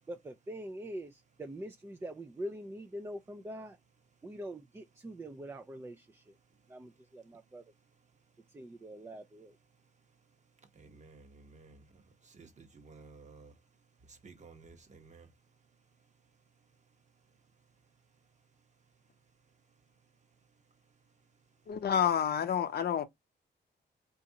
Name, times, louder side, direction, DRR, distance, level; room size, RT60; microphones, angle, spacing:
voice 1, 0.1-3.8 4.2-6.4 6.7-7.6 8.5-9.6, right 1 dB, 15° right, 0.3 m, -44 dB
voice 2, 10.8-11.8 12.3-13.5 14.2-15.3, right 4 dB, 40° right, 0.9 m, -54 dB
voice 3, 21.7-23.0, left 8 dB, 60° left, 0.6 m, -29 dB
4.0 x 2.4 x 2.7 m
wide cardioid pair, 145°, 19 cm